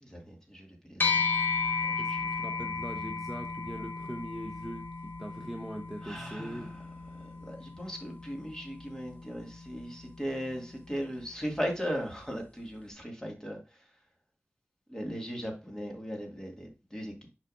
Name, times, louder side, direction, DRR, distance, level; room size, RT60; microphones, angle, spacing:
voice 1, 0.0-1.2 1.8-2.3 6.0-6.7 7.4-13.6 14.9-17.3, equal, 15° left, 1 dB, 1.9 m, -38 dB
sound 1, 1.0-10.6, left 4 dB, 45° left, 0.8 m, -34 dB
voice 2, 2.0-6.7, equal, 5° right, 3 dB, 0.7 m, -41 dB
6.3 x 5.8 x 2.5 m, 0.30 s
wide cardioid pair, 85°, 5 cm